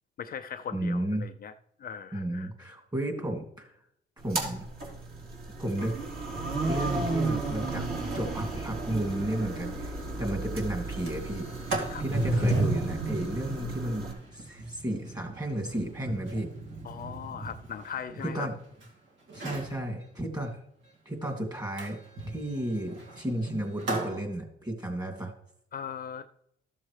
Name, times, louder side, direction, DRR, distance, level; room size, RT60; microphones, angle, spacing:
voice 1, 0.2-1.5 1.8-2.5 11.9-12.0 16.8-18.5 25.7-26.3, left 8 dB, 45° left, 8 dB, 0.5 m, -39 dB
voice 2, 0.7-1.3 2.1-3.7 4.2-4.6 5.6-5.9 6.7-7.8 8.1-11.5 12.0-14.1 14.3-16.5 18.2-18.5 19.3-20.6 21.1-22.0 22.3-25.3, right 1 dB, 20° right, 1 dB, 2.5 m, -33 dB
sound 1, 4.2-14.1, right 3 dB, 50° right, 3.3 m, -34 dB
Sliding door, 9.3-9.4 9.7-9.8 10.2-10.5 10.9-18.9 19.3-19.8 21.8-24.2, right 2 dB, 70° right, 2.2 m, -34 dB
13.0 x 7.3 x 3.3 m, 0.74 s
cardioid pair, 90°, 20 cm